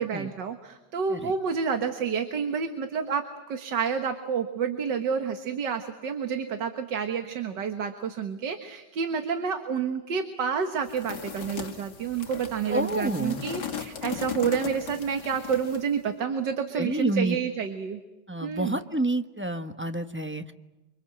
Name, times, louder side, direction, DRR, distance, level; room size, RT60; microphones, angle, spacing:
voice 1, 0.0-18.0 18.4-18.8, right 6 dB, 85° right, 7 dB, 2.1 m, -29 dB
sound 1, 10.9-15.9, left 8 dB, 70° left, 2.3 m, -37 dB
voice 2, 12.7-13.5 16.7-17.4 18.3-20.5, right 1 dB, 10° right, 8 dB, 0.8 m, -29 dB
29.0 x 25.5 x 7.8 m, 1.1 s
omnidirectional pair, 1.9 m